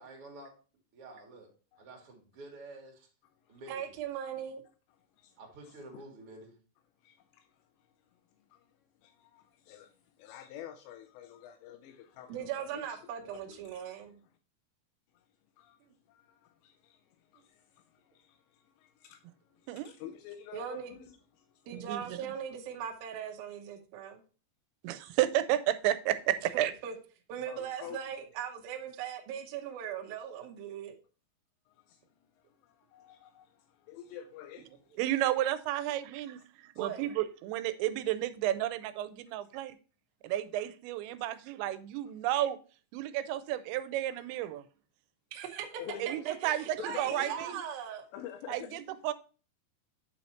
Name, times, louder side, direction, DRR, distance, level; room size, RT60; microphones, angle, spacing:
voice 1, 0.0-0.5 0.9-1.5 1.8-3.1 3.5-3.9 5.4-6.5, right 2 dB, 45° right, 2.0 m, -49 dB
voice 2, 3.7-4.6 12.3-14.2 20.5-20.9 21.7-24.2 26.5-26.9 27.3-30.9 36.8-37.1 45.3-45.8 46.1-48.1, right 8 dB, 75° right, 2.3 m, -39 dB
voice 3, 7.0-8.2 8.5-8.7 9.0-13.0 13.2-13.9 14.2-14.3 15.1-15.3 15.6-15.8 16.1-22.0 25.0-25.1 27.5-28.1 31.7-35.0 44.1-44.2 45.8-46.2 46.8-47.4 48.1-48.8, left 10 dB, 85° left, 2.8 m, -49 dB
voice 4, 21.7-22.2 24.8-26.7 35.0-39.8 40.2-42.6 42.9-44.6 46.0-47.6 48.5-49.1, right 13 dB, 90° right, 2.9 m, -32 dB
8.6 x 4.2 x 4.3 m
omnidirectional pair, 5.0 m